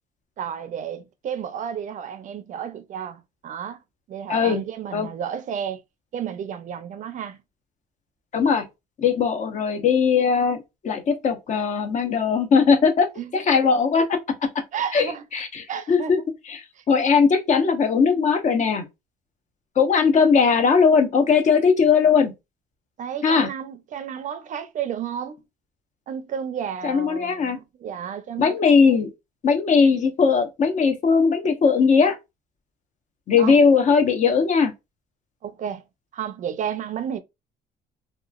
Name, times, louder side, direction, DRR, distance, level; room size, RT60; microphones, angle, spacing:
voice 1, 0.4-3.8 4.1-5.8 6.1-7.4 13.2-13.4 14.7-15.2 15.7-16.3 16.8-16.9 23.0-25.4 26.1-28.6 28.9-29.0 33.4-33.6 35.4-35.8 36.1-37.2, right 8 dB, 50° right, 0.5 m, -32 dB
voice 2, 4.3-4.6 4.9-5.1 8.3-8.6 9.0-14.2 14.9-15.1 15.3-16.2 16.5-18.9 19.8-22.3 23.2-23.5 26.8-27.6 28.4-29.1 29.4-32.2 33.3-34.7, left 5 dB, 45° left, 0.7 m, -19 dB
2.9 x 2.3 x 2.3 m
cardioid pair, 110°, 17 cm